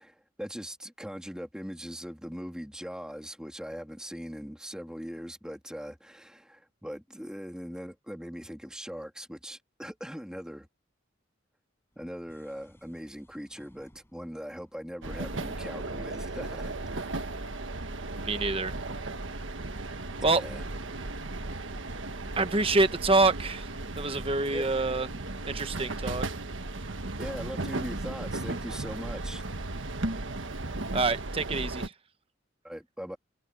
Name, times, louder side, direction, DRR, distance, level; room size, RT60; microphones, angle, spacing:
voice 1, 0.0-10.7 12.0-17.3 20.3-20.9 24.5-24.7 27.2-29.5 32.6-33.2, equal, 5° right, 3.0 m, -41 dB
sound 1, 11.9-26.1, equal, 10° left, 7.9 m, -55 dB
sound 2, 15.0-31.9, right 2 dB, 80° right, 1.4 m, -36 dB
voice 2, 18.2-18.7 20.2-20.4 22.4-25.1 25.5-26.3 30.9-31.9, right 3 dB, 30° right, 1.2 m, -26 dB
head